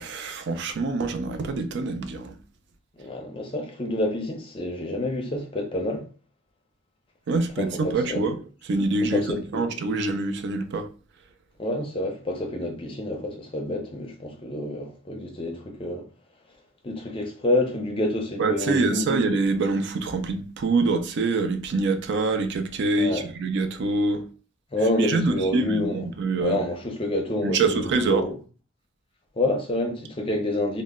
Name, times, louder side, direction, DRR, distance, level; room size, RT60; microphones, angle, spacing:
voice 1, 0.0-2.3 7.3-8.4 8.7-10.9 18.4-24.2 25.0-26.6 27.4-28.3, right 3 dB, 55° right, 0.4 m, -25 dB
voice 2, 3.0-6.1 7.6-8.2 9.1-9.6 11.6-16.0 16.8-19.0 23.0-23.3 24.7-26.1 26.4-28.3 29.4-30.8, left 1 dB, 25° left, 0.5 m, -28 dB
2.1 x 2.0 x 3.5 m
head